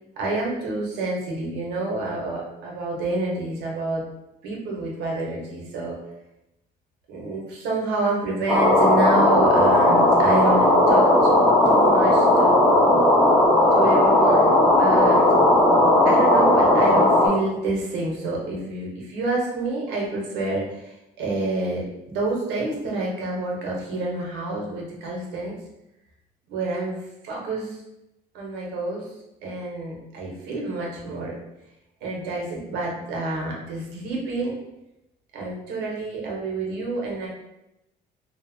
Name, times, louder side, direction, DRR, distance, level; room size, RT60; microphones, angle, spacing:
voice 1, 0.2-4.1 4.4-6.0 7.1-12.9 13.7-15.3 16.0-25.5 26.5-27.0 27.2-27.8 28.3-29.1 29.4-31.4 32.0-34.5 35.3-37.3, right 2 dB, 80° right, -2 dB, 0.8 m, -28 dB
sound 1, 8.5-17.3, left 1 dB, 15° left, 0.8 m, -16 dB
2.8 x 2.1 x 2.6 m, 0.90 s
cardioid pair, 110°, 17 cm